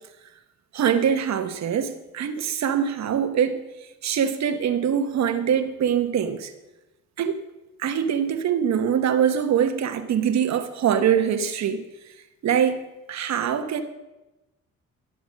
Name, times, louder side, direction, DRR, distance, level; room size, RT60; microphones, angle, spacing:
voice 1, 0.7-3.6 4.0-6.5 7.2-7.4 7.8-11.8 12.4-13.8, right 8 dB, 65° right, 1.1 m, -23 dB
11.5 x 6.9 x 6.4 m
cardioid pair, 90°, 30 cm